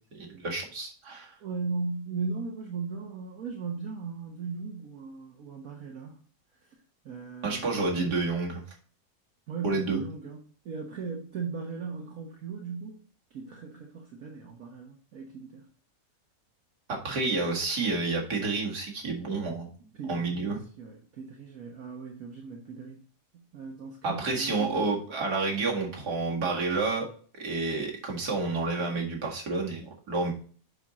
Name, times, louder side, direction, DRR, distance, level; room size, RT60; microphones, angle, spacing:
voice 1, 0.1-1.3 7.4-8.6 9.6-10.0 16.9-19.7 20.1-20.6 24.0-27.1 27.4-30.3, right 3 dB, 75° right, -1 dB, 2.6 m, -29 dB
voice 2, 1.4-6.2 7.0-7.8 9.5-13.0 13.3-15.7 19.9-23.0 23.3-24.9, right 4 dB, 60° right, 2 dB, 1.4 m, -37 dB
7.3 x 6.3 x 4.1 m, 0.42 s
omnidirectional pair, 1.8 m